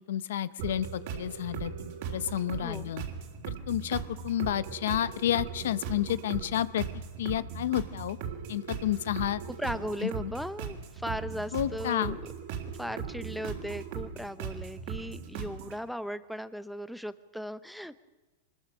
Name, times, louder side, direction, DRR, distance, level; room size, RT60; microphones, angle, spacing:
voice 1, 0.1-1.7 2.1-3.0 3.5-6.8 7.2-8.2 8.5-9.4 10.0-10.3 11.5-12.2, left 12 dB, 80° left, 16 dB, 0.7 m, -30 dB
sound 1, 0.6-15.8, right 7 dB, 60° right, 3.4 m, -38 dB
voice 2, 2.6-2.9 9.4-12.2 12.8-18.0, equal, ahead, 13 dB, 0.7 m, -37 dB
24.0 x 20.5 x 6.2 m, 1.2 s
supercardioid pair, 140°, 0 cm